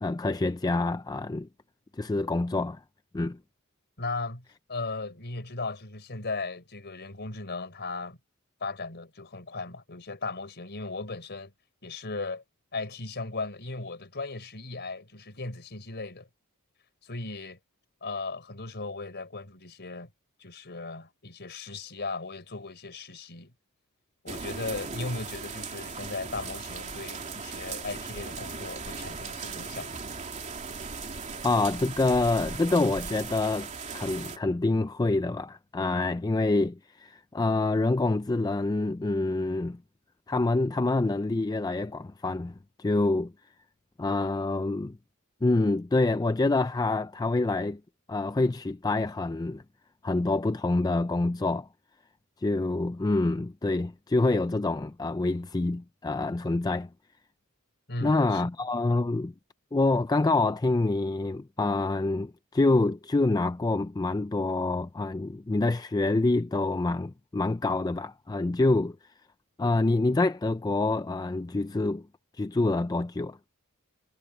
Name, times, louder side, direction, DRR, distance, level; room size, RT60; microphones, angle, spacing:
voice 1, 0.0-1.5 2.0-2.8 3.1-3.4 31.4-39.8 40.3-43.3 44.0-45.0 45.4-47.8 48.1-49.6 50.0-51.7 52.4-56.9 58.0-59.3 59.7-69.0 69.6-72.0 72.4-73.4, left 2 dB, 15° left, 0.4 m, -26 dB
voice 2, 4.0-8.2 8.6-11.5 11.8-12.4 12.7-16.3 17.0-17.6 18.0-20.1 20.4-23.5 24.2-30.0 57.9-58.5, left 3 dB, 50° left, 4.4 m, -37 dB
sound 1, 24.3-34.4, right 4 dB, 35° right, 2.8 m, -38 dB
head